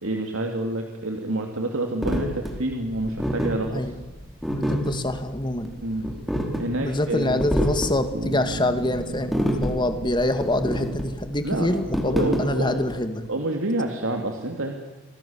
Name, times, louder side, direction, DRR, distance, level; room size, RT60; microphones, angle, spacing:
voice 1, 0.0-3.9 5.8-6.1 6.6-7.4 11.4-11.7 12.1-12.8 13.3-14.8, right 1 dB, 75° right, 3 dB, 2.9 m, -28 dB
sound 1, 2.0-13.0, equal, ahead, 4.2 m, -28 dB
voice 2, 4.5-5.7 6.8-9.3 9.6-13.2, left 1 dB, 20° left, 8 dB, 2.2 m, -25 dB
Bass guitar, 8.1-11.8, right 3 dB, 60° right, 2.4 m, -38 dB
29.0 x 24.0 x 7.4 m, 1.2 s
head